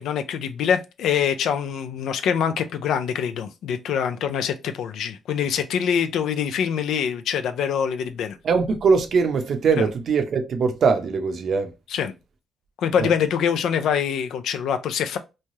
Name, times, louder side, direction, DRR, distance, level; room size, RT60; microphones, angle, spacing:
voice 1, 0.0-8.4 9.8-9.9 11.9-12.1 12.8-15.2, left 8 dB, 75° left, 0.4 m, -24 dB
voice 2, 8.4-11.7 13.0-13.1, right 5 dB, 60° right, 0.6 m, -21 dB
3.1 x 2.3 x 2.7 m
cardioid pair, 90°, 0 cm